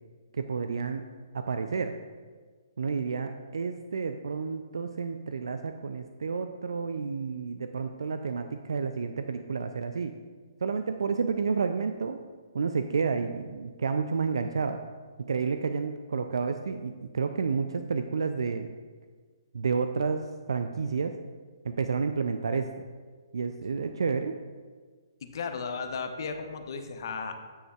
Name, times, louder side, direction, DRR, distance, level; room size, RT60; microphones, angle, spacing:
voice 1, 0.3-1.1 1.3-1.9 2.8-10.1 10.6-12.2 12.5-14.8 15.2-18.7 19.5-21.2 21.6-22.7 23.3-24.4, right 5 dB, 75° right, 8 dB, 0.3 m, -30 dB
voice 2, 25.2-27.4, left 5 dB, 60° left, 6 dB, 0.7 m, -35 dB
9.4 x 6.4 x 2.3 m, 1.5 s
figure-of-eight pair, 135°, 2 cm